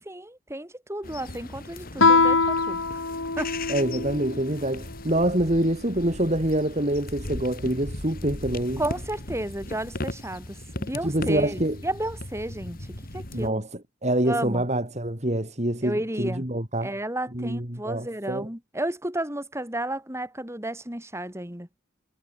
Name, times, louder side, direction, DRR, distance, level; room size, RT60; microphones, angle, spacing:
voice 1, 0.1-2.8 3.4-3.6 8.8-12.8 13.1-13.6 14.2-14.6 15.8-16.5 16.8-21.7, right 1 dB, 15° right, 6.3 m, -32 dB
sound 1, 1.0-13.5, left 1 dB, 45° left, 3.5 m, -38 dB
Guitar, 2.0-4.4, left 3 dB, 75° left, 2.6 m, -22 dB
voice 2, 3.7-8.8 11.0-11.8 13.3-13.7 14.0-16.9 17.3-18.5, right 1 dB, 35° right, 4.1 m, -26 dB
head